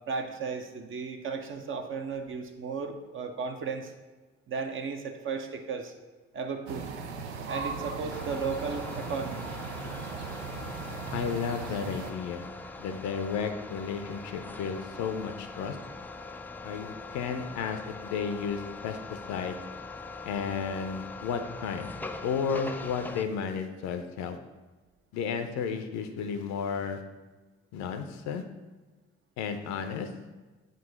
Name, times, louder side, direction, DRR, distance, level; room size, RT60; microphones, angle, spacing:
voice 1, 0.1-3.9 4.5-5.9 6.3-6.9 7.5-9.5, right 5 dB, 35° right, 5 dB, 0.7 m, -35 dB
sound 1, 6.7-12.1, right 5 dB, 75° right, 0.5 m, -38 dB
sound 2, 8.1-23.3, left 3 dB, 5° left, 0.3 m, -42 dB
voice 2, 11.1-12.5 12.8-15.8 16.6-19.6 20.2-21.9 22.2-24.4 25.1-27.0 27.7-28.4 29.4-30.1, left 6 dB, 55° left, 7 dB, 0.6 m, -33 dB
7.5 x 2.7 x 5.0 m, 1.2 s
figure-of-eight pair, 40°, 34 cm